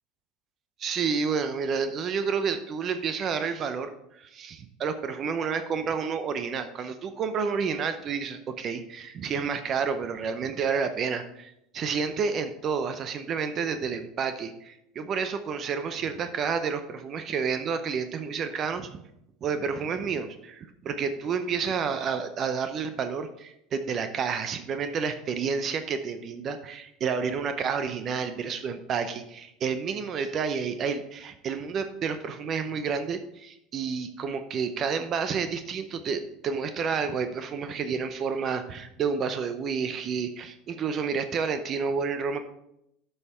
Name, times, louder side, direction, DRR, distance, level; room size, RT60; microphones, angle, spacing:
voice 1, 0.8-19.0 19.4-42.4, right 6 dB, 40° right, 9 dB, 0.6 m, -30 dB
8.0 x 5.6 x 4.3 m, 0.80 s
supercardioid pair, 110°, 0 cm